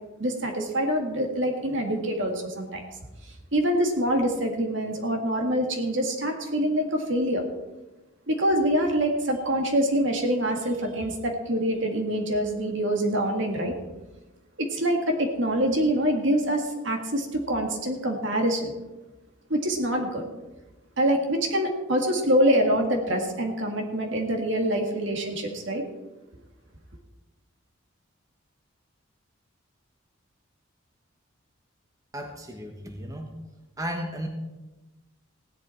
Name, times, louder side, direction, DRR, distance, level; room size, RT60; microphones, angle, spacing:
voice 1, 0.2-2.8 3.5-7.4 8.3-13.7 14.6-18.7 19.5-20.2 21.0-25.8, right 1 dB, 60° right, 3 dB, 2.1 m, -25 dB
voice 2, 32.1-33.4 33.8-34.3, equal, 15° right, 2 dB, 1.2 m, -34 dB
16.0 x 11.0 x 4.5 m, 1.1 s
head